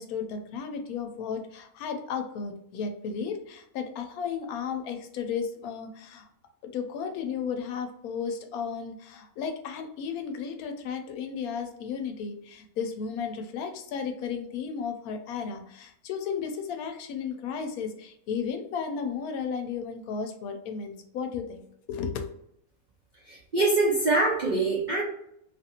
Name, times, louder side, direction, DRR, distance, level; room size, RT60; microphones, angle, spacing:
voice 1, 0.0-6.3 6.6-22.3, left 6 dB, 80° left, 5 dB, 1.0 m, -34 dB
voice 2, 23.3-25.0, right 2 dB, 65° right, -4 dB, 0.4 m, -24 dB
2.8 x 2.5 x 2.7 m, 0.74 s
omnidirectional pair, 1.6 m